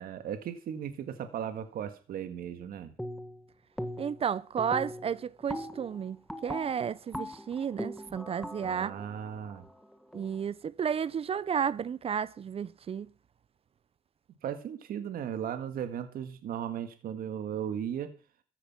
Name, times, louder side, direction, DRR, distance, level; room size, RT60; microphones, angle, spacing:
voice 1, 0.0-2.9 8.6-9.7 14.4-18.1, right 9 dB, 60° right, 1.8 m, -36 dB
sound 1, 3.0-3.4 3.8-4.3 4.6-10.4, equal, ahead, 1.5 m, -40 dB
voice 2, 4.0-8.9 10.1-13.1, right 7 dB, 35° right, 0.6 m, -32 dB
14.0 x 9.9 x 6.0 m
cardioid pair, 110°, 17 cm